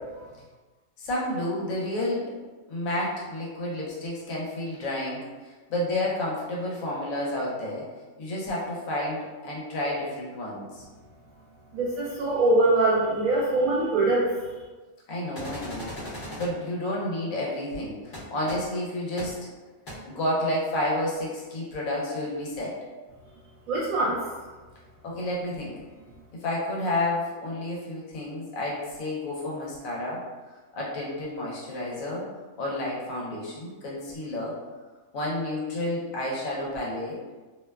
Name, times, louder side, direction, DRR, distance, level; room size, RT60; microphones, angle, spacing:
voice 1, 1.0-2.2 2.7-7.8 8.2-10.8 15.1-16.0 16.4-19.5 20.0-22.8 25.0-25.7 26.3-30.3 30.7-32.3 32.6-34.6 35.1-37.2, left 1 dB, 75° left, -5 dB, 1.1 m, -30 dB
voice 2, 11.7-14.3 23.7-24.2, right 2 dB, 80° right, -7 dB, 1.0 m, -23 dB
sound 1, 15.3-16.5 18.1-18.2 18.5-18.6 19.2-19.3 19.9-20.0, left 1 dB, 40° left, 0.9 m, -37 dB
2.7 x 2.1 x 2.2 m, 1.3 s
omnidirectional pair, 1.4 m